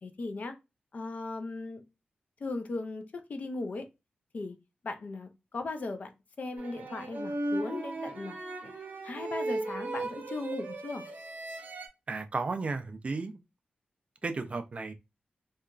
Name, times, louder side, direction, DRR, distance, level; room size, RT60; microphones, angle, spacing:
voice 1, 0.0-0.5 0.9-1.8 2.4-3.9 4.3-4.6 4.8-6.1 6.4-8.3 8.6-8.7 9.0-11.1, left 3 dB, 50° left, 0.4 m, -37 dB
sound 1, 6.6-11.9, right 2 dB, 55° right, 0.7 m, -36 dB
voice 2, 12.1-13.3 14.2-14.9, right 3 dB, 35° right, 0.3 m, -33 dB
2.9 x 2.3 x 2.3 m
wide cardioid pair, 125°, 3 cm